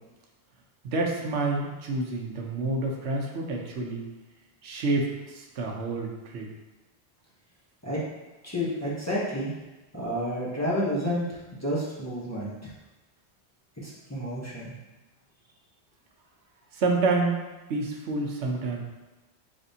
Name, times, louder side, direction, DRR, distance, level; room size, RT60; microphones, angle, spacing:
voice 1, 0.8-4.0 4.6-6.5 16.7-17.4 17.7-18.8, right 3 dB, 80° right, 0 dB, 1.0 m, -28 dB
voice 2, 8.4-9.5 9.9-12.5 13.8-14.7, equal, 15° left, -7 dB, 0.8 m, -30 dB
5.1 x 3.4 x 2.7 m, 1.1 s
omnidirectional pair, 1.1 m